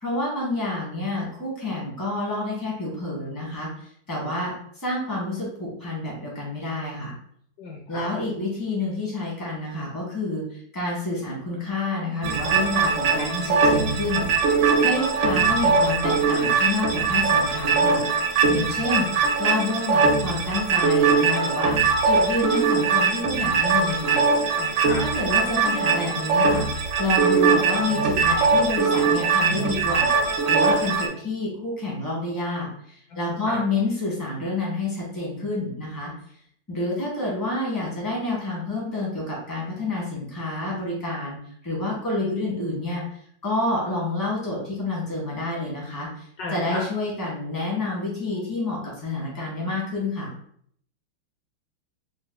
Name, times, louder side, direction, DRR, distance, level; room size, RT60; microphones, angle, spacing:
voice 1, 0.0-3.7 4.1-7.1 7.9-14.3 14.8-18.0 18.5-19.1 19.4-21.8 22.0-24.2 25.0-26.7 27.0-30.2 30.5-36.1 36.7-41.4 41.6-43.0 43.4-50.3, left 2 dB, 15° left, -4 dB, 1.0 m, -28 dB
voice 2, 7.6-8.1 24.5-25.0 33.1-33.6 46.4-46.8, left 3 dB, 90° left, -1 dB, 0.8 m, -34 dB
sound 1, 12.2-31.1, right 4 dB, 70° right, 1.2 m, -21 dB
4.0 x 3.7 x 2.2 m, 0.63 s
omnidirectional pair, 2.4 m